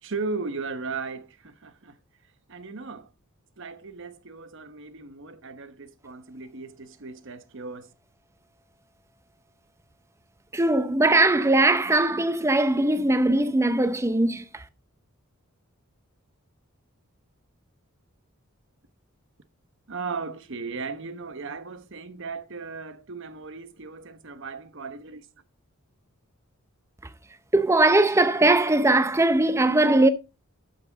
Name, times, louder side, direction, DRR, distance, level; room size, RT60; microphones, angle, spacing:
voice 1, 0.0-2.0 2.5-3.1 3.6-7.9 19.9-25.3, right 4 dB, 60° right, 1.0 m, -36 dB
voice 2, 10.5-14.6 27.5-30.1, right 2 dB, 15° right, 0.6 m, -20 dB
11.5 x 5.9 x 3.9 m
head